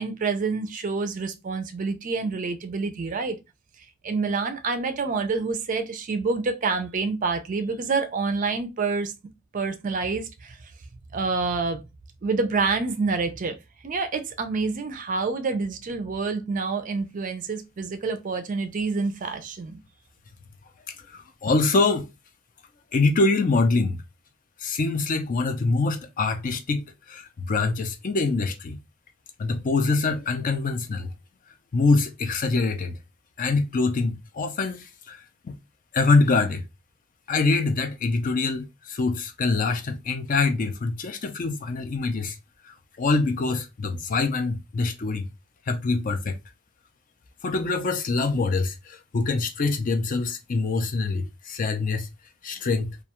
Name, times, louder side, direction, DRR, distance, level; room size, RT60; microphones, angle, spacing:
voice 1, 0.0-3.4 4.0-9.1 9.5-10.6 11.1-11.8 12.2-13.6 13.8-19.8, right 4 dB, 40° right, 0.4 m, -27 dB
voice 2, 21.1-22.1 22.9-24.0 24.6-28.8 29.4-31.1 31.7-33.0 33.4-35.6 35.9-36.6 37.3-42.4 42.7-45.3 45.7-46.4 47.4-52.1 52.4-52.9, left 3 dB, 40° left, 0.4 m, -24 dB
2.3 x 2.2 x 2.8 m
head